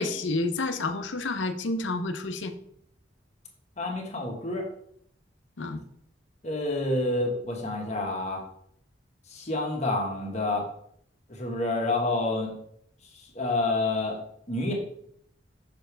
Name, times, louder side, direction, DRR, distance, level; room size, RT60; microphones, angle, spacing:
voice 1, 0.0-2.5 5.6-5.8, left 2 dB, 90° left, 8 dB, 0.7 m, -29 dB
voice 2, 3.8-4.7 6.4-8.4 9.3-10.7 11.3-12.5 13.3-14.2 14.5-14.7, left 2 dB, 40° left, 0 dB, 1.4 m, -28 dB
6.7 x 6.0 x 3.4 m, 0.68 s
head